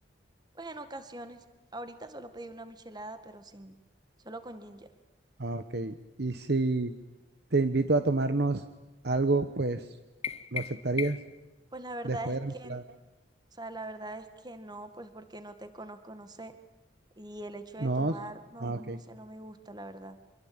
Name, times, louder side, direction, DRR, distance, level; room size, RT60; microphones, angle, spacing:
voice 1, 0.5-1.4 1.7-3.8 4.2-4.9 11.7-12.8 13.6-16.5 17.2-20.2, right 1 dB, 25° right, 9 dB, 1.9 m, -43 dB
voice 2, 5.4-6.9 7.5-8.6 9.0-9.9 10.5-11.2 12.0-12.8 17.8-18.1 18.6-19.0, right 3 dB, 60° right, 10 dB, 1.1 m, -28 dB
sound 1, 10.2-11.4, left 7 dB, 35° left, 1.0 m, -37 dB
26.0 x 22.0 x 8.8 m, 1.0 s
head